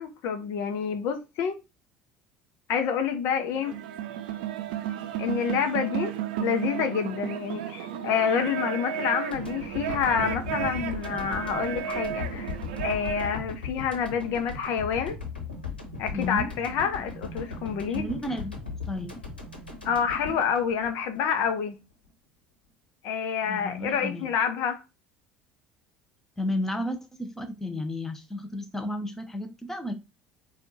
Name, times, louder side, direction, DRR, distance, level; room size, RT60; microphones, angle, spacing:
voice 1, 0.0-1.6 2.7-3.7 5.2-12.5 12.8-15.2 16.0-18.0 19.8-21.8 23.0-24.8, left 7 dB, 55° left, 0.7 m, -28 dB
sound 1, 3.5-13.4, right 10 dB, 65° right, 0.5 m, -33 dB
sound 2, 9.3-21.5, left 4 dB, 85° left, 1.1 m, -38 dB
voice 2, 16.1-16.5 17.9-18.5 18.9-19.2 23.5-24.3 26.4-29.9, left 1 dB, 5° left, 0.8 m, -32 dB
4.4 x 2.4 x 4.0 m
figure-of-eight pair, 65°, 5 cm